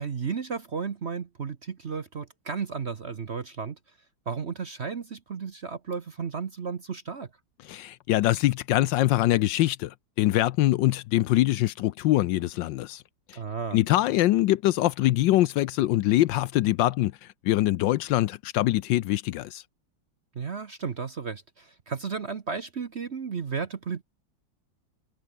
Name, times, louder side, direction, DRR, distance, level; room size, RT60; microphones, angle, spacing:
voice 1, 0.0-3.8 4.3-7.3 13.3-13.8 20.3-24.0, right 5 dB, 40° right, 1.0 m, -33 dB
voice 2, 7.7-13.0 13.7-17.1 17.4-19.6, left 15 dB, 75° left, 1.2 m, -23 dB
omnidirectional pair, 2.2 m